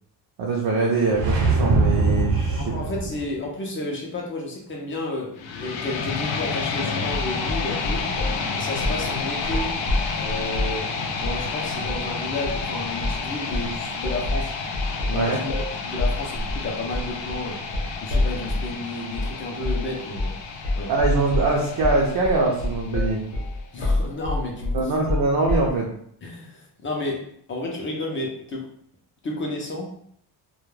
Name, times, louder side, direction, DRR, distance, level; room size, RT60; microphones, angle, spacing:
voice 1, 0.4-2.7 15.1-15.4 20.9-23.2 24.7-25.9, right 3 dB, 50° right, -2 dB, 0.5 m, -23 dB
sound 1, 1.1-3.3, right 3 dB, 85° right, 0.8 m, -22 dB
voice 2, 2.6-8.1 8.5-9.8 10.2-14.5 15.1-17.6 18.0-20.4 20.8-20.9 23.7-24.9 26.2-28.7 29.2-29.9, left 2 dB, 30° left, -1 dB, 0.4 m, -32 dB
sound 2, 5.4-23.4, left 4 dB, 85° left, 0.5 m, -31 dB
sound 3, 7.1-8.4 8.8-9.1 9.4-10.8 11.2-11.5 11.8-12.1 12.4-12.7 13.0-13.3 13.5-18.7 19.1-19.3 19.6-19.9 20.2-20.4 20.6-25.8, left 1 dB, 55° left, 0.8 m, -27 dB
2.2 x 2.1 x 3.0 m, 0.66 s
cardioid pair, 175°, 44 cm